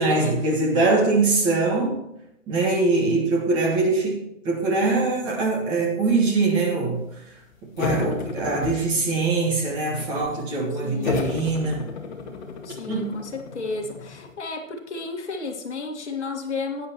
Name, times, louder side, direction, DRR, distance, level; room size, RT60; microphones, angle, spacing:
voice 1, 0.0-2.0 2.5-7.0 7.8-11.9 12.9-13.2, right 3 dB, 10° right, 0 dB, 1.4 m, -22 dB
sound 1, 7.8-9.3 9.6-10.4 11.0-14.3, left 4 dB, 35° left, 1.9 m, -32 dB
voice 2, 10.8-11.4 12.6-16.9, left 3 dB, 60° left, 3 dB, 2.0 m, -32 dB
12.5 x 9.4 x 3.0 m, 0.81 s
hypercardioid pair, 165°, 39 cm